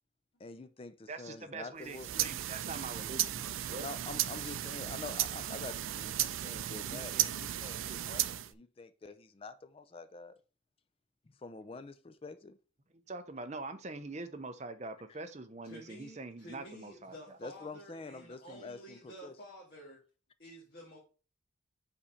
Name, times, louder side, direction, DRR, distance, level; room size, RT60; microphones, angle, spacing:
voice 1, 0.4-2.1 3.8-10.3 11.4-12.6 15.1-15.2 17.4-19.3, left 3 dB, 25° left, 0.4 m, -46 dB
voice 2, 1.1-3.9 6.7-7.5 13.1-17.4, right 3 dB, 35° right, 0.7 m, -44 dB
sound 1, 1.8-8.5, right 12 dB, 80° right, 0.4 m, -35 dB
voice 3, 15.6-20.0 20.4-21.0, right 1 dB, 55° left, 1.8 m, -51 dB
5.6 x 4.1 x 5.0 m
head